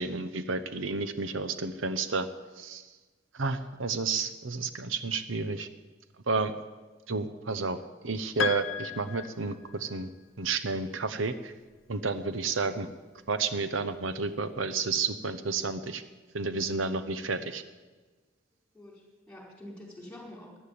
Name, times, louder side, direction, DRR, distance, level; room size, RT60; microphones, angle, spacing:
voice 1, 0.0-2.3 2.6-2.8 3.3-5.7 6.3-6.5 7.1-10.1 10.4-11.5 11.9-12.9 13.3-16.0 16.3-17.6, right 4 dB, 90° right, 11 dB, 0.9 m, -31 dB
Piano, 8.4-10.1, left 8 dB, 75° left, 0.7 m, -35 dB
voice 2, 18.7-20.6, left 1 dB, 5° left, -1 dB, 4.8 m, -47 dB
14.5 x 11.0 x 8.5 m, 1.3 s
head